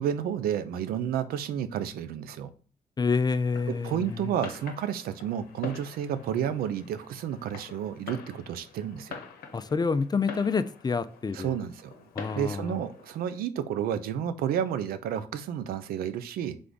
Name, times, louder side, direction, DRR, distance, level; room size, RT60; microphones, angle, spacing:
voice 1, 0.0-2.5 3.7-9.2 11.3-12.0 12.3-16.6, right 9 dB, 80° right, 0.5 m, -31 dB
voice 2, 3.0-4.3 9.5-11.6 12.2-12.8, left 4 dB, 25° left, 0.4 m, -28 dB
Fireworks, 3.4-13.4, left 6 dB, 80° left, 0.8 m, -46 dB
3.4 x 3.4 x 3.9 m
supercardioid pair, 50°, 15 cm